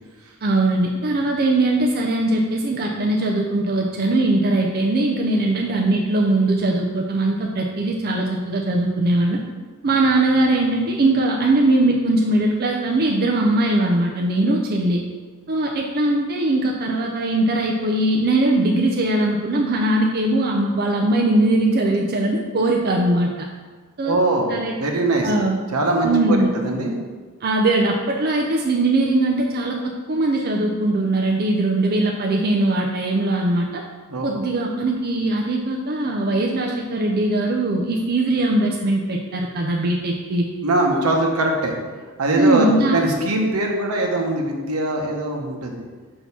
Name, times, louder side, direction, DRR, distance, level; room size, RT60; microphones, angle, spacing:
voice 1, 0.4-9.4 9.8-15.0 15.5-23.5 24.0-24.2 24.5-24.8 25.2-25.6 26.0-26.5 27.4-33.8 34.2-40.5 42.4-43.0, right 2 dB, 45° right, 0 dB, 0.5 m, -20 dB
voice 2, 24.0-24.5 24.8-25.3 25.7-27.0 34.1-34.3 40.6-41.7 42.2-42.7 42.9-45.8, right 2 dB, 80° right, 1 dB, 1.0 m, -21 dB
6.3 x 2.9 x 5.5 m, 1.4 s
head